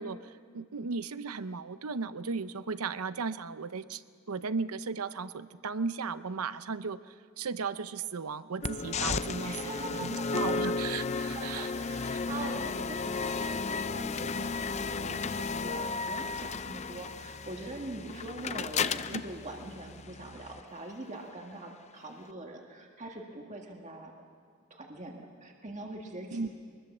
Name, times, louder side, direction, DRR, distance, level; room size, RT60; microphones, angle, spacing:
voice 1, 0.0-9.7 10.0-11.7 19.1-19.2 26.3-26.5, right 4 dB, 85° right, 13 dB, 0.7 m, -36 dB
sound 1, 8.6-20.6, left 4 dB, 30° left, 0.5 m, -34 dB
voice 2, 9.4-10.6 11.4-24.1 24.7-26.5, right 2 dB, 35° right, 1 dB, 1.8 m, -43 dB
23.5 x 20.5 x 7.3 m, 2.1 s
head